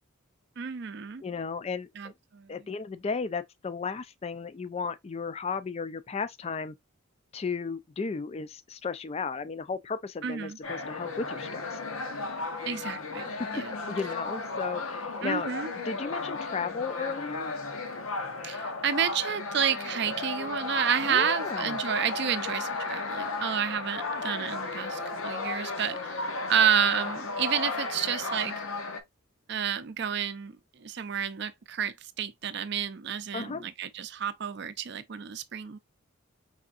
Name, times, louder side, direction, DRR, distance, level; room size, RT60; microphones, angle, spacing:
voice 1, 0.6-1.2 2.0-2.5 10.2-10.6 12.7-13.2 13.5-13.7 15.2-15.7 18.4-26.2 26.5-28.5 29.5-35.8, right 8 dB, 50° right, 0.5 m, -30 dB
voice 2, 1.2-2.1 2.5-6.7 7.3-11.8 13.3-13.5 13.9-15.5 15.8-17.5 21.1-21.8 33.3-33.6, left 5 dB, 30° left, 0.3 m, -34 dB
sound 1, 10.6-29.0, left 3 dB, 80° left, 0.9 m, -34 dB
4.8 x 3.4 x 2.5 m
head